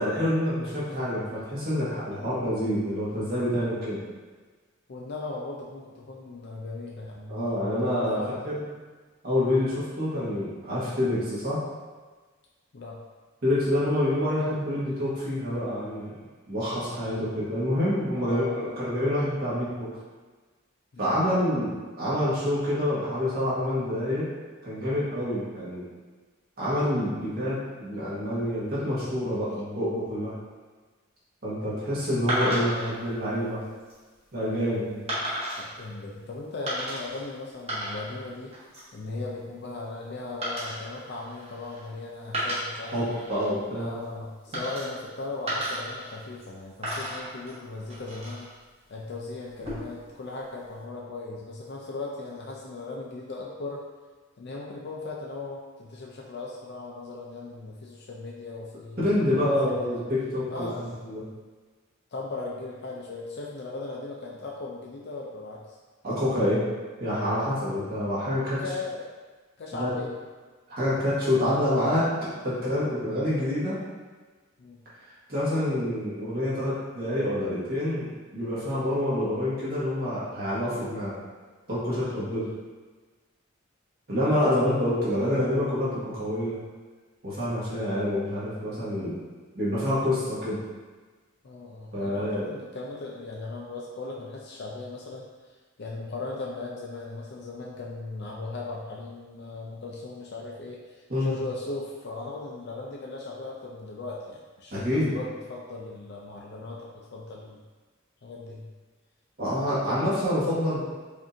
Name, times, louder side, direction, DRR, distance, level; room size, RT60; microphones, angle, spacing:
voice 1, 0.0-4.0 7.3-8.6 9.2-11.6 13.4-16.2 16.5-19.9 21.0-24.3 24.6-25.8 26.6-30.3 31.4-33.6 34.3-34.9 42.9-44.0 59.0-60.7 61.1-61.2 66.0-66.6 67.0-68.6 69.8-69.9 70.7-73.8 75.3-81.2 81.7-82.5 84.1-86.6 87.2-89.2 89.5-90.6 91.9-92.5 101.1-101.3 104.7-105.1 109.4-110.8, left 1 dB, 45° right, -9 dB, 1.4 m, -27 dB
voice 2, 0.6-1.0 4.9-8.5 12.7-13.0 18.1-18.9 20.9-21.2 34.5-38.6 38.9-43.2 43.8-48.5 48.9-53.8 54.4-60.0 60.5-61.1 62.1-65.8 68.4-69.1 69.6-70.2 74.6-74.8 91.4-107.6 108.2-108.7, left 3 dB, 50° left, -3 dB, 0.4 m, -38 dB
sound 1, 32.3-32.9 33.6-34.0 35.1-35.7 36.7-37.2 37.5-38.2 38.5-39.0 40.4-41.9 42.2-43.5 44.5-45.1 45.5-46.5 46.8-48.5 49.5-50.1, equal, 30° right, 1.1 m, -33 dB
5.0 x 2.6 x 2.6 m, 1.4 s
head